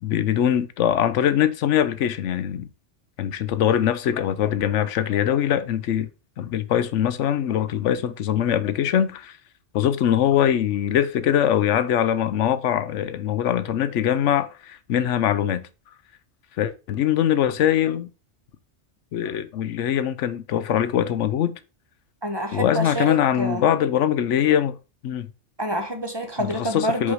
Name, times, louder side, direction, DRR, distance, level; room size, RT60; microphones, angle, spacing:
voice 1, 0.0-2.7 3.2-6.1 6.4-9.3 9.7-15.7 16.6-18.1 19.1-21.6 22.5-24.8 25.0-25.3 26.4-27.1, left 10 dB, 90° left, 1.0 m, -22 dB
voice 2, 22.2-23.6 25.6-27.1, right 1 dB, 20° right, 1.1 m, -27 dB
5.3 x 4.7 x 4.8 m
omnidirectional pair, 1.2 m